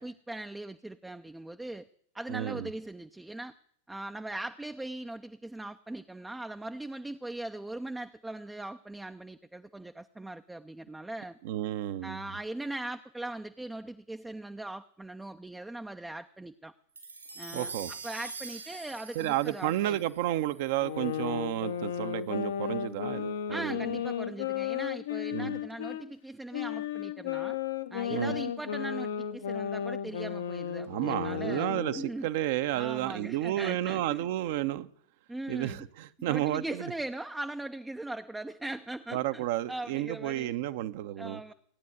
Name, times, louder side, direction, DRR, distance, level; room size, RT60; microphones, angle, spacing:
voice 1, 0.0-1.9 2.1-3.5 3.9-11.4 12.0-16.7 17.4-20.0 23.5-27.6 27.9-32.3 32.7-34.3 35.3-35.9 36.3-40.5 41.2-41.5, right 2 dB, 5° right, 0.6 m, -40 dB
voice 2, 2.3-2.7 11.4-12.2 17.5-17.9 19.1-23.9 25.3-25.6 28.1-28.4 30.9-34.9 35.5-36.9 39.1-41.4, right 13 dB, 50° right, 0.9 m, -31 dB
sound 1, 17.0-21.5, right 4 dB, 80° right, 4.7 m, -44 dB
sound 2, 20.8-26.0 26.5-32.1, left 9 dB, 60° left, 1.0 m, -34 dB
17.0 x 9.4 x 8.0 m
figure-of-eight pair, 90°, 0 cm